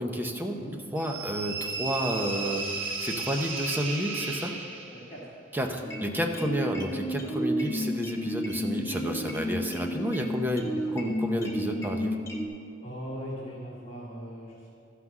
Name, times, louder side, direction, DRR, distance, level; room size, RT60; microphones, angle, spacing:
voice 1, 0.0-0.6 0.9-4.5 5.5-12.2, equal, 10° right, 3 dB, 0.8 m, -31 dB
sound 1, 1.0-5.1, right 3 dB, 70° right, 1.4 m, -34 dB
voice 2, 4.9-5.3 10.6-10.8 12.8-14.7, equal, 30° left, -9 dB, 2.1 m, -40 dB
sound 2, 5.8-12.5, equal, 15° left, 1.2 m, -32 dB
13.5 x 5.9 x 6.1 m, 2.6 s
head